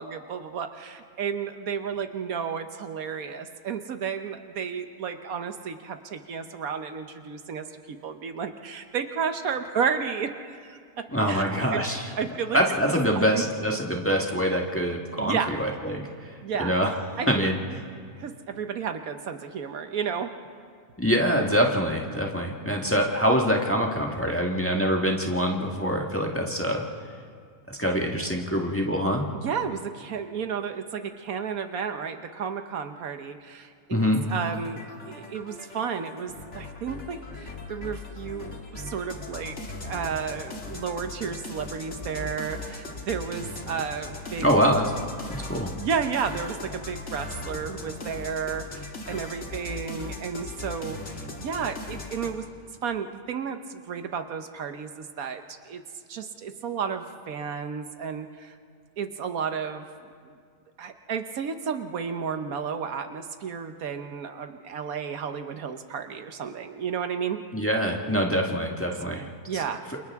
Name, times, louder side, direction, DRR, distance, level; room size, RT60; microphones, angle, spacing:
voice 1, 0.0-11.8 12.2-12.6 13.1-13.4 15.2-15.6 16.4-16.8 17.2-17.5 18.2-20.3 29.4-34.0 34.3-44.4 45.8-52.5 52.8-55.8 56.1-58.5 59.0-59.8 60.2-60.3 60.8-67.4 69.2-69.8, right 6 dB, 70° right, 8 dB, 1.3 m, -32 dB
voice 2, 11.1-12.1 12.5-16.1 16.6-16.9 17.3-17.6 21.0-26.8 27.7-29.3 33.9-34.3 44.4-44.9 45.3-45.7 67.5-69.3, equal, 10° left, 0 dB, 1.4 m, -24 dB
sound 1, 34.2-52.3, left 3 dB, 50° left, 2.1 m, -39 dB
28.5 x 28.0 x 3.6 m, 2.1 s
omnidirectional pair, 1.6 m